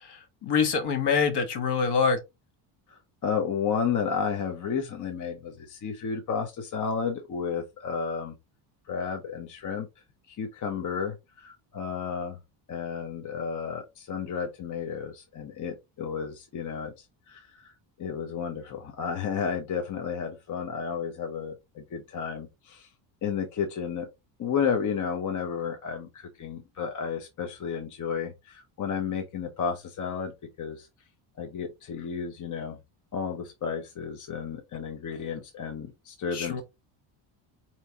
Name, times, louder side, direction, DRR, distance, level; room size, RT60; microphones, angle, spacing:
voice 1, 0.4-2.2 36.3-36.6, left 5 dB, 55° left, 1.3 m, -24 dB
voice 2, 2.9-8.4 8.9-9.9 10.3-12.4 12.7-22.9 23.2-24.1 24.4-30.9 31.4-32.8 33.1-36.6, left 6 dB, 40° left, 0.8 m, -32 dB
4.7 x 2.9 x 2.8 m
cardioid pair, 115°, 49 cm